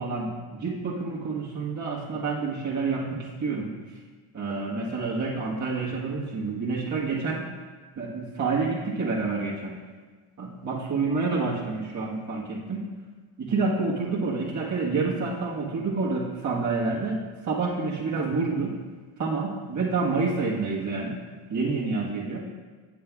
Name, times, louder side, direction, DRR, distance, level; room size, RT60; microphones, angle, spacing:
voice 1, 0.0-3.7 4.3-7.4 8.0-9.8 10.4-12.8 13.4-17.2 17.4-18.7 19.2-21.2 21.5-22.4, right 4 dB, 35° right, -6 dB, 1.4 m, -28 dB
9.8 x 7.5 x 2.4 m, 1.4 s
cardioid pair, 85°, 50 cm